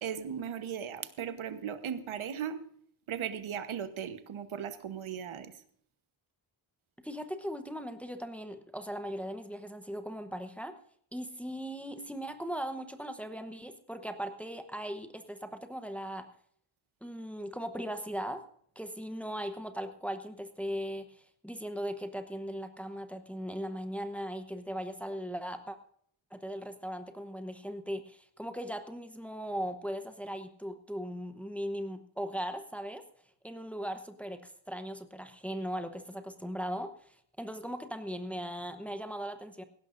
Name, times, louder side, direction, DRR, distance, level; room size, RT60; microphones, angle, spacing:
voice 1, 0.0-2.6 3.1-5.6, right 8 dB, 80° right, 11 dB, 1.2 m, -37 dB
voice 2, 7.0-10.7 11.1-16.3 17.0-18.4 18.8-25.8 26.3-33.0 33.4-39.6, equal, 5° left, 7 dB, 0.9 m, -38 dB
18.0 x 16.5 x 2.6 m, 0.63 s
wide cardioid pair, 180°, 48 cm